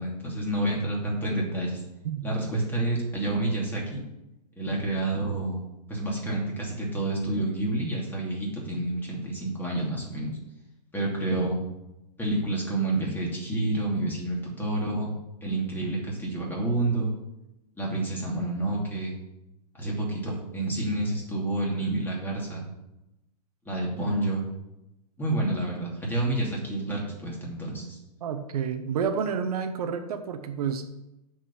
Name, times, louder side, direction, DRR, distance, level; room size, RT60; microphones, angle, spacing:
voice 1, 0.0-1.8 2.2-4.0 4.6-5.6 5.9-10.3 10.9-11.6 12.2-15.1 15.4-17.1 17.8-19.2 19.7-22.6 23.6-24.4 25.2-28.0, right 2 dB, 10° left, -2 dB, 2.8 m, -29 dB
voice 2, 28.2-30.9, right 7 dB, 65° right, 7 dB, 1.1 m, -30 dB
8.5 x 5.4 x 7.5 m, 0.92 s
hypercardioid pair, 140°, 20 cm